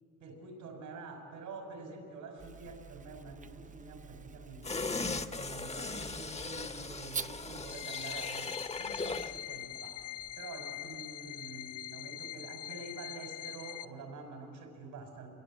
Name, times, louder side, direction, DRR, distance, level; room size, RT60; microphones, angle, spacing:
voice 1, 0.2-5.0 5.3-15.3, right 3 dB, 90° right, 4 dB, 5.8 m, -47 dB
sound 1, 2.4-7.9, right 6 dB, 25° right, 0.6 m, -47 dB
sound 2, 4.6-9.4 9.7-9.9, left 3 dB, 20° left, 1.1 m, -38 dB
sound 3, 7.6-13.8, left 14 dB, 55° left, 1.3 m, -43 dB
28.0 x 21.0 x 8.7 m, 2.5 s
cardioid pair, 90°, 30 cm